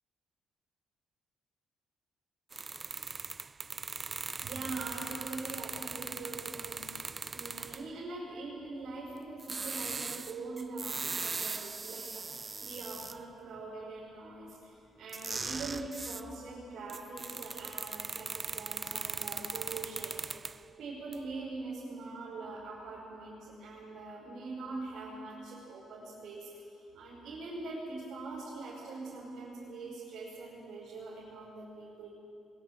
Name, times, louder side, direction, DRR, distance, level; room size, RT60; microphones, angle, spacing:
sound 1, 2.5-7.9 9.4-13.2 15.1-16.3 16.9-20.6 21.1-21.2, right 4 dB, 30° right, 0.4 m, -39 dB
voice 1, 4.4-20.5 20.8-32.1, right 3 dB, 70° right, -7 dB, 5.6 m, -43 dB
22.0 x 20.0 x 7.5 m, 2.7 s
cardioid pair, 90°, 0 cm